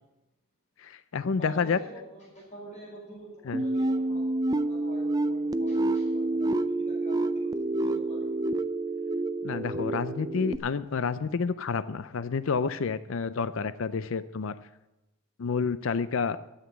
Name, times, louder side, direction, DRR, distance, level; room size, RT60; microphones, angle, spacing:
voice 1, 0.8-1.8 3.5-3.6 9.4-14.5 15.4-16.4, left 5 dB, 60° left, 14 dB, 0.5 m, -29 dB
voice 2, 1.4-8.4, equal, 30° left, -4 dB, 5.5 m, -47 dB
sound 1, 3.5-10.6, right 2 dB, 15° right, 0.4 m, -28 dB
12.5 x 8.1 x 8.4 m, 0.99 s
head